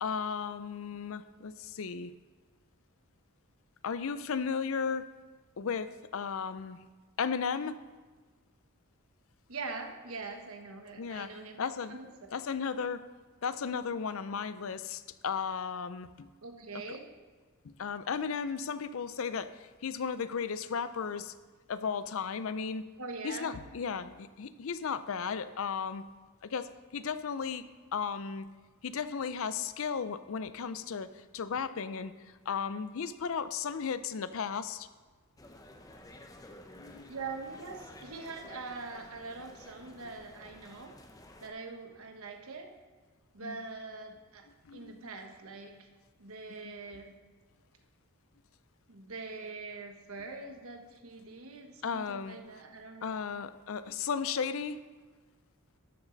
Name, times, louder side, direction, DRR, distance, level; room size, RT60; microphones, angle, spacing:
voice 1, 0.0-2.1 3.8-5.1 5.6-6.8 7.2-7.8 11.0-11.3 11.6-11.9 12.3-13.1 13.4-16.3 17.6-19.5 19.8-21.3 21.7-22.8 23.2-26.0 26.4-27.7 27.9-28.5 28.8-32.1 32.5-34.9 36.8-37.1 43.4-43.6 44.7-44.9 46.6-46.7 51.8-52.4 53.0-54.8, left 6 dB, 65° left, 13 dB, 0.5 m, -35 dB
voice 2, 9.5-12.3 16.4-17.0 23.0-23.5 37.1-41.0 41.4-42.7 43.3-44.5 44.7-45.9 46.2-47.2 48.9-53.3, right 3 dB, 70° right, 4 dB, 1.2 m, -43 dB
sound 1, 35.4-41.5, left 1 dB, 15° left, 0.6 m, -52 dB
12.5 x 7.3 x 3.9 m, 1.4 s
head